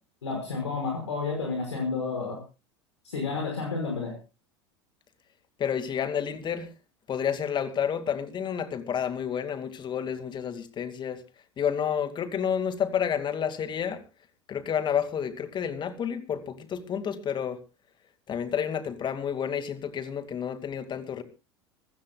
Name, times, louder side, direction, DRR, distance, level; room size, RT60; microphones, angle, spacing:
voice 1, 0.2-2.4 3.0-4.1, left 4 dB, 75° left, 5.6 m, -30 dB
voice 2, 5.6-6.7 7.1-11.2 11.6-14.0 14.5-17.6 18.3-21.2, left 8 dB, 30° left, 2.4 m, -30 dB
25.5 x 15.5 x 2.3 m
figure-of-eight pair, 80°, 15 cm